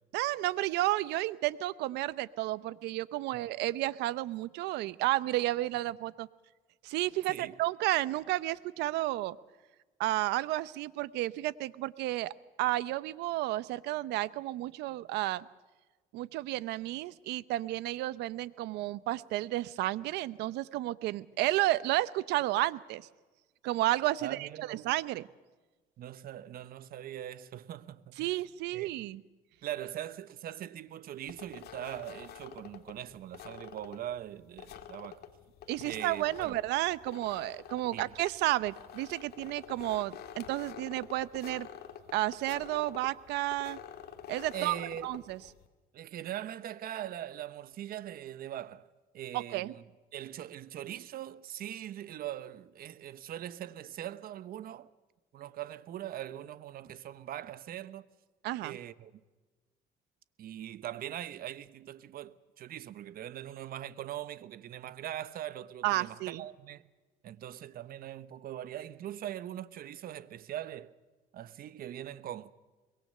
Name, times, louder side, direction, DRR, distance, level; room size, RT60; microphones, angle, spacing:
voice 1, 0.1-6.3 6.8-9.4 10.0-12.3 12.6-15.4 16.1-23.1 23.6-25.2 28.2-29.2 35.7-41.7 42.1-43.8 44.3-44.8 45.0-45.4 49.3-49.7 58.4-58.8 65.8-66.4, right 16 dB, 85° right, 0.8 m, -32 dB
voice 2, 24.2-24.9 26.0-28.4 28.7-29.1 29.6-35.2 35.8-36.6 37.9-38.1 44.5-45.1 45.9-48.9 49.1-49.8 50.1-54.9 55.3-58.1 58.6-59.1 60.4-66.8 67.2-70.9 71.3-72.5, right 12 dB, 60° right, 1.0 m, -41 dB
sound 1, 31.3-45.7, left 9 dB, 70° left, 2.3 m, -48 dB
24.0 x 22.0 x 6.6 m
cardioid pair, 110°, 17 cm